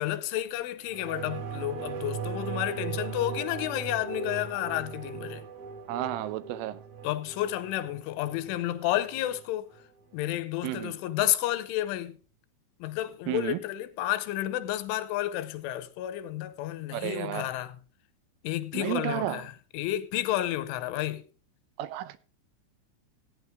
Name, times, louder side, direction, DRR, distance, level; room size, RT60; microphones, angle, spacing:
voice 1, 0.0-5.4 7.0-9.7 10.1-12.2 12.8-17.8 18.4-21.2, left 14 dB, 80° left, 3.2 m, -31 dB
sound 1, 0.8-9.9 10.2-10.3, right 6 dB, 55° right, 3.3 m, -38 dB
voice 2, 5.9-6.8 10.6-10.9 13.3-13.6 16.9-17.5 18.7-19.4 21.8-22.2, right 14 dB, 85° right, 3.3 m, -32 dB
15.0 x 9.7 x 3.4 m
omnidirectional pair, 5.6 m